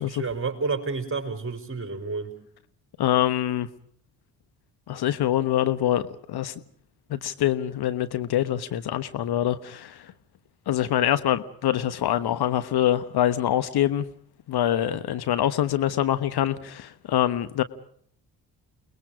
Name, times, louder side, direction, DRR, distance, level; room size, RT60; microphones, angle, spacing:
voice 1, 0.0-2.3 14.7-15.0, right 4 dB, 25° right, 6 dB, 5.3 m, -30 dB
voice 2, 3.0-3.7 4.9-6.0 6.3-6.5 7.1-10.1 10.7-14.0 14.5-17.6, left 12 dB, 50° left, 11 dB, 1.3 m, -24 dB
29.0 x 21.0 x 5.0 m, 0.63 s
figure-of-eight pair, 45°, 49 cm